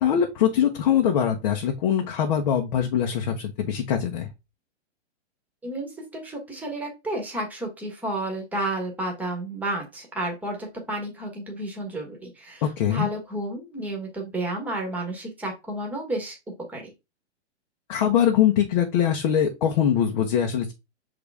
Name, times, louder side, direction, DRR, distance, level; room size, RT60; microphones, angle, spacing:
voice 1, 0.0-4.3 12.6-13.1 17.9-20.7, left 9 dB, 40° left, 2 dB, 1.0 m, -22 dB
voice 2, 5.6-16.4 16.7-16.9, right 1 dB, 5° right, 1 dB, 1.4 m, -31 dB
6.7 x 3.9 x 3.5 m, 0.24 s
hypercardioid pair, 165°, 36 cm